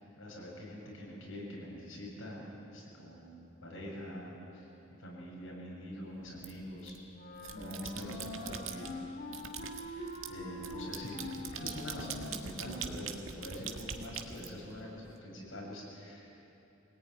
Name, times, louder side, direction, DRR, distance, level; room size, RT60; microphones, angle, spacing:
voice 1, 0.2-4.7 5.0-6.9 7.5-8.9 9.9-16.4, equal, 80° left, -3 dB, 7.7 m, -44 dB
sound 1, 6.4-7.0 7.4-8.9 9.3-15.1, right 7 dB, 90° right, 1.7 m, -43 dB
Wind instrument woodwind instrument, 7.1-13.3, left 1 dB, 45° left, 2.6 m, -44 dB
24.5 x 18.5 x 9.7 m, 3.0 s
head